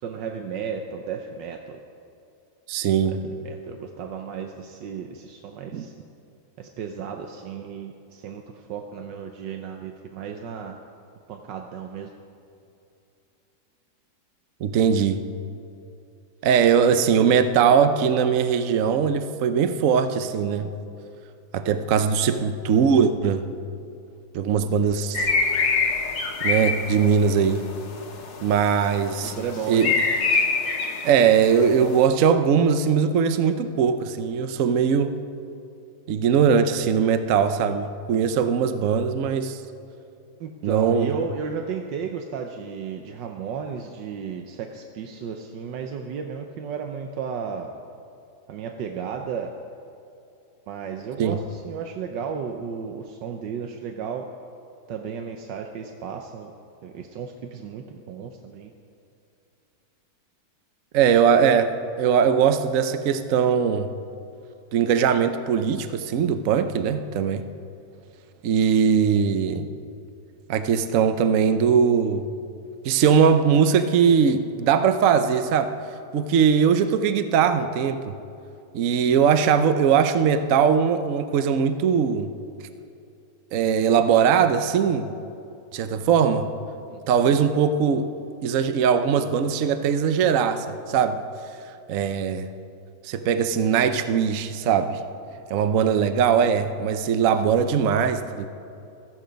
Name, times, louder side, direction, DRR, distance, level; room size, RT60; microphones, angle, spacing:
voice 1, 0.0-1.8 3.1-3.2 3.4-5.9 6.6-10.8 11.3-12.1 28.8-28.9 29.3-30.0 40.4-47.7 48.5-49.5 50.7-54.3 54.9-56.5 56.8-58.7 86.9-87.0, right 6 dB, 85° right, 4 dB, 1.5 m, -34 dB
voice 2, 2.7-3.3 5.7-5.8 14.6-15.2 16.4-20.7 21.5-23.4 24.3-25.3 26.4-27.6 28.4-29.3 29.7-29.9 31.0-35.1 36.1-39.6 40.6-41.1 51.2-51.4 60.9-63.9 64.7-67.5 68.4-69.7 70.5-72.3 72.8-75.7 76.1-78.1 78.7-82.3 83.5-85.1 85.7-86.5 87.1-88.1 88.4-91.2 91.9-92.5 93.0-95.0 95.5-98.5, right 7 dB, 60° right, 9 dB, 1.0 m, -20 dB
sound 1, 25.1-32.0, left 4 dB, 90° left, 2.0 m, -26 dB
16.0 x 14.0 x 5.2 m, 2.6 s
omnidirectional pair, 1.9 m